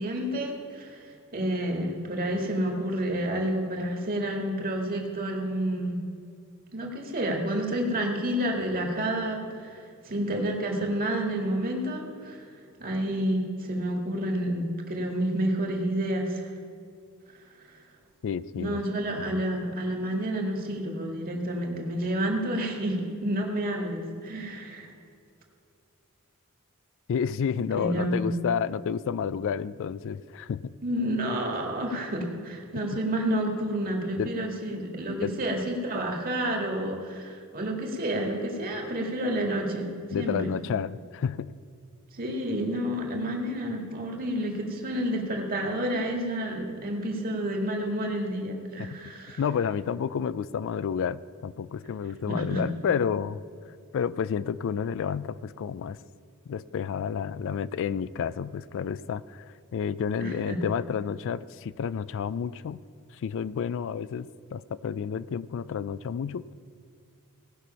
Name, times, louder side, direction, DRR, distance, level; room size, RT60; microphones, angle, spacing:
voice 1, 0.0-6.0 6.7-12.5 12.8-16.5 18.6-24.9 27.7-28.4 30.8-40.5 42.1-49.4 52.3-52.6 60.2-60.6, right 1 dB, 40° right, 1 dB, 1.9 m, -29 dB
voice 2, 18.2-18.8 19.2-19.4 27.1-30.7 32.7-33.0 34.2-34.3 35.2-35.3 40.1-41.5 48.8-49.0 49.4-53.4 53.9-56.0 56.5-62.8 63.1-66.5, left 7 dB, 60° left, 17 dB, 0.3 m, -30 dB
17.5 x 6.2 x 5.6 m, 2.4 s
head